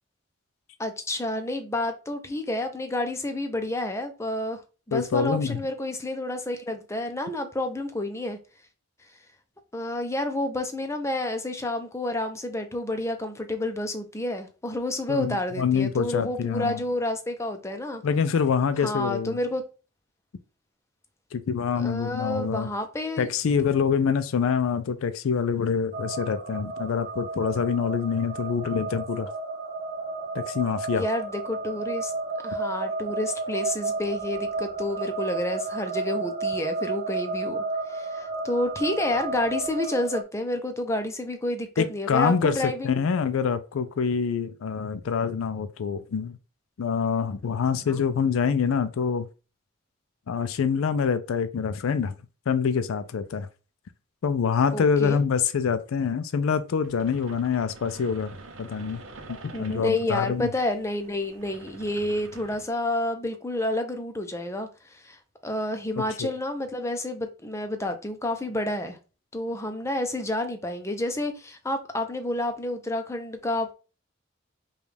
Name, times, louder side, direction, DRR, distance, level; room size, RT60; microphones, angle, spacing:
voice 1, 0.8-4.6 4.9-8.4 9.7-18.0 18.8-19.6 21.8-23.3 30.9-32.1 32.4-43.0 47.9-48.0 54.7-55.2 59.5-65.2 65.4-69.0 69.3-73.7, left 1 dB, 15° left, 0.5 m, -29 dB
voice 2, 4.9-5.6 15.1-16.8 18.0-19.4 21.3-22.7 23.2-29.3 30.3-31.1 41.8-46.4 46.8-49.3 50.3-52.1 52.5-53.5 54.2-59.0 59.4-60.5 66.2-66.3, left 6 dB, 90° left, 0.4 m, -25 dB
Metallic Ambiance, 25.9-40.2, right 3 dB, 35° right, 0.5 m, -32 dB
sound 1, 56.8-62.7, right 3 dB, 75° right, 0.8 m, -46 dB
5.1 x 2.4 x 3.2 m
head